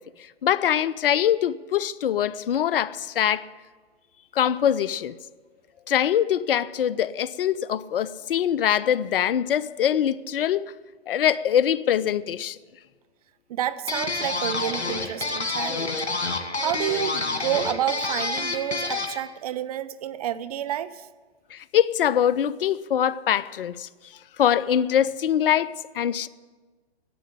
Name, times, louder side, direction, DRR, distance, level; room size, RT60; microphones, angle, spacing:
voice 1, 0.4-3.5 4.3-5.1 5.9-10.7 11.1-12.6 21.5-23.9 24.4-26.3, left 9 dB, 55° left, 0.5 m, -23 dB
voice 2, 13.5-16.1 16.6-21.1, right 11 dB, 35° right, 0.5 m, -29 dB
sound 1, 13.9-19.2, left 3 dB, 85° left, 1.7 m, -28 dB
11.0 x 8.5 x 9.8 m
figure-of-eight pair, 125°, 33 cm